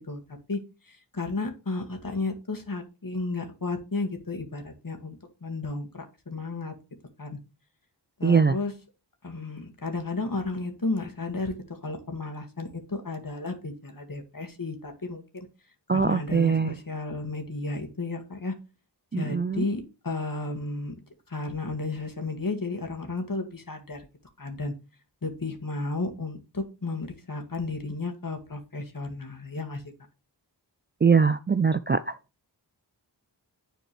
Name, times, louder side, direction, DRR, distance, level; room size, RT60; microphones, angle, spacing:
voice 1, 0.9-6.7 7.2-7.4 8.2-8.7 9.2-11.6 11.8-15.5 15.9-18.5 19.1-20.9 21.3-24.0 24.4-24.7 25.2-29.8, left 3 dB, 50° left, 1.9 m, -33 dB
voice 2, 8.2-8.6 15.9-16.8 19.1-19.6 31.0-32.1, right 5 dB, 25° right, 0.3 m, -22 dB
10.0 x 4.4 x 3.2 m
wide cardioid pair, 75°, 43 cm